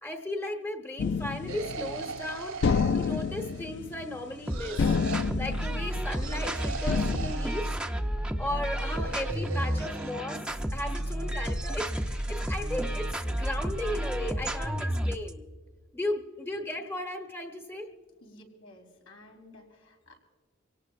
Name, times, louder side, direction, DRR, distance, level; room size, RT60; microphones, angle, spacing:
voice 1, 0.0-2.6 2.9-4.8 5.3-7.7 8.4-10.4 10.7-15.4 15.9-17.9, left 1 dB, 10° left, 6 dB, 1.1 m, -35 dB
sound 1, 1.0-2.2 2.6-4.5 4.8-6.4 6.9-7.3, left 5 dB, 55° left, 0.4 m, -29 dB
sound 2, 1.5-3.8 4.4-5.3 6.1-7.8 8.6-10.1, right 5 dB, 80° right, 1.7 m, -40 dB
sound 3, 4.5-15.3, right 1 dB, 5° right, 0.6 m, -31 dB
voice 2, 18.1-20.2, left 1 dB, 80° left, 1 dB, 4.1 m, -53 dB
25.0 x 18.0 x 2.5 m, 1.5 s
head